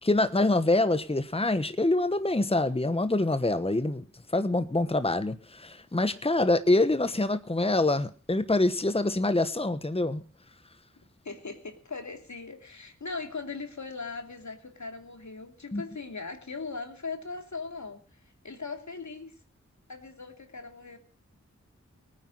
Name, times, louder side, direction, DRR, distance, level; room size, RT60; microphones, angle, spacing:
voice 1, 0.0-4.0 4.3-10.2 15.7-15.8, left 2 dB, 20° left, 11 dB, 1.2 m, -25 dB
voice 2, 11.2-19.3 19.9-21.0, left 4 dB, 70° left, 6 dB, 2.8 m, -39 dB
19.0 x 9.7 x 6.2 m, 0.39 s
cardioid pair, 40°, 30 cm